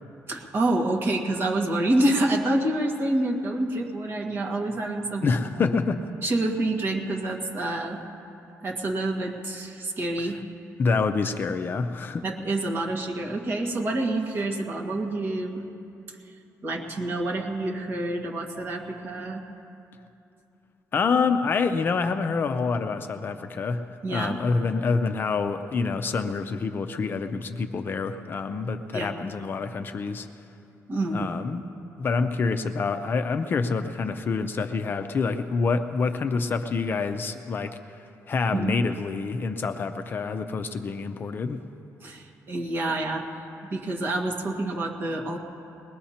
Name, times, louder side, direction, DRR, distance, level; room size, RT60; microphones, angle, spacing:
voice 1, 0.3-5.7 6.2-8.0 8.6-10.4 12.2-15.6 16.6-19.5 24.0-24.4 28.9-29.2 30.9-31.3 38.5-38.8 42.0-45.4, right 1 dB, 40° right, 0 dB, 1.8 m, -27 dB
voice 2, 5.2-6.0 10.2-10.3 10.8-12.2 20.9-23.8 24.1-30.3 31.1-31.6 32.0-37.8 38.3-41.6, left 4 dB, 35° left, 8 dB, 0.6 m, -27 dB
21.0 x 20.0 x 2.9 m, 2.7 s
cardioid pair, 145°, 6 cm